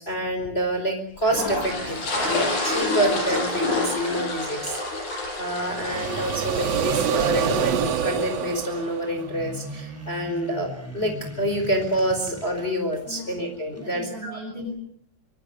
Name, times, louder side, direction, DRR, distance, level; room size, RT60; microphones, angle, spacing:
voice 1, 0.0-5.0 5.4-14.4, right 1 dB, 15° left, 4 dB, 4.7 m, -27 dB
sound 1, 1.2-8.5, left 2 dB, 45° left, 7.0 m, -29 dB
sound 2, 5.6-9.6, right 8 dB, 65° right, 1.6 m, -26 dB
voice 2, 5.7-6.1 13.1-13.4 13.8-14.7, left 2 dB, 40° right, -1 dB, 8.4 m, -37 dB
sound 3, 8.9-13.9, equal, 5° right, 4.9 m, -40 dB
25.5 x 24.5 x 7.7 m, 0.64 s
omnidirectional pair, 4.8 m